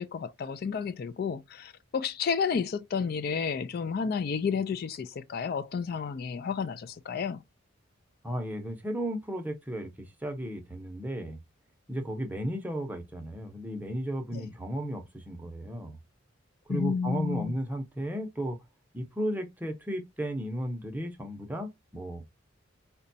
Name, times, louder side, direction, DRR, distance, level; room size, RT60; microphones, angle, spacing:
voice 1, 0.0-7.4 14.3-14.5 16.7-17.6, left 6 dB, 50° left, 0.3 m, -31 dB
voice 2, 8.2-11.4 11.9-16.0 16.7-18.6 18.9-22.3, equal, 10° right, 0.6 m, -34 dB
4.9 x 2.2 x 2.6 m
head